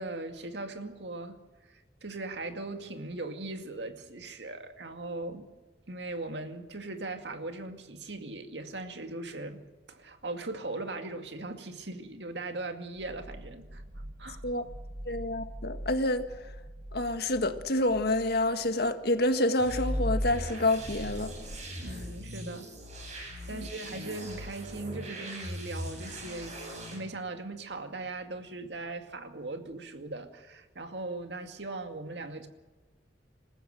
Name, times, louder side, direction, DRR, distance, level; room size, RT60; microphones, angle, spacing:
voice 1, 0.0-1.4 2.0-5.5 5.9-9.6 9.9-13.8 14.2-14.4 21.8-22.7 23.5-32.5, right 2 dB, 70° right, 2.2 m, -39 dB
sound 1, 13.0-19.7, right 1 dB, 90° right, 1.7 m, -45 dB
voice 2, 15.0-16.5 16.9-21.3 21.8-21.9 23.5-23.7, left 1 dB, 65° left, 1.7 m, -28 dB
sound 2, 19.6-27.0, equal, 40° right, 8.0 m, -37 dB
27.0 x 15.0 x 7.8 m
head